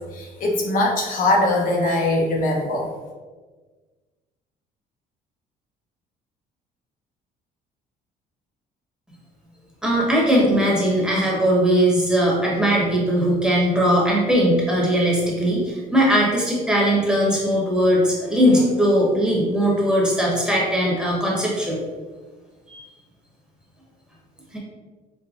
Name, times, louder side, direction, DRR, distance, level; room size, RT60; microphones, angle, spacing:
voice 1, 0.1-2.9, left 2 dB, 55° left, -2 dB, 0.7 m, -21 dB
voice 2, 9.8-21.8 22.7-22.8 24.5-24.6, equal, 5° right, -5 dB, 1.0 m, -19 dB
5.0 x 2.1 x 2.5 m, 1.3 s
cardioid pair, 110°, 17 cm